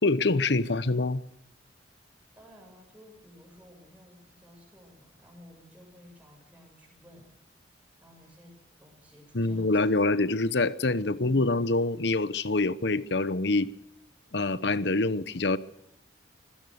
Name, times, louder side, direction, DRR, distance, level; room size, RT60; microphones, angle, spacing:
voice 1, 0.0-1.2 9.3-13.7 14.3-15.6, left 2 dB, 65° left, 1.0 m, -25 dB
voice 2, 2.4-7.3 8.0-9.9 10.2-10.4 11.2-11.5, equal, 5° right, 7.1 m, -54 dB
24.5 x 16.5 x 6.5 m
head